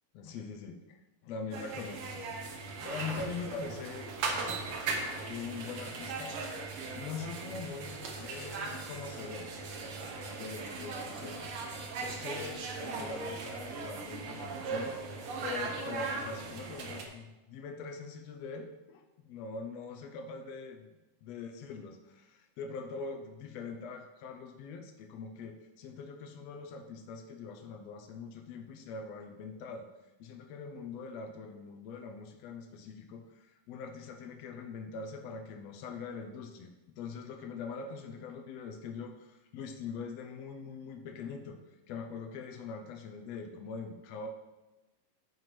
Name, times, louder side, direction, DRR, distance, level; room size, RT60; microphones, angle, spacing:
voice 1, 0.1-1.0 1.2-2.5 2.8-4.5 5.3-6.3 6.9-9.5 10.0-11.5 11.9-15.0 15.4-21.9 22.2-29.9 30.2-41.6 41.9-44.3, left 5 dB, 90° left, 5 dB, 1.4 m, -43 dB
sound 1, 1.5-17.1, right 3 dB, 85° right, 1.2 m, -38 dB
9.2 x 7.7 x 3.2 m, 1.1 s
omnidirectional pair, 3.9 m